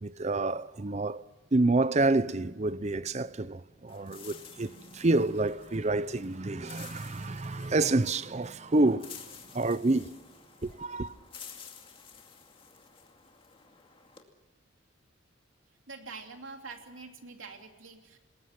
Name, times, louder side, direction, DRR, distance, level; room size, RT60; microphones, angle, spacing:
voice 1, 0.0-1.2 1.5-10.1 10.6-11.2, right 2 dB, 35° right, 0.7 m, -28 dB
sound 1, 3.9-14.2, left 6 dB, 25° left, 2.3 m, -51 dB
voice 2, 15.9-18.2, right 4 dB, 90° right, 3.0 m, -45 dB
28.0 x 20.0 x 5.9 m
head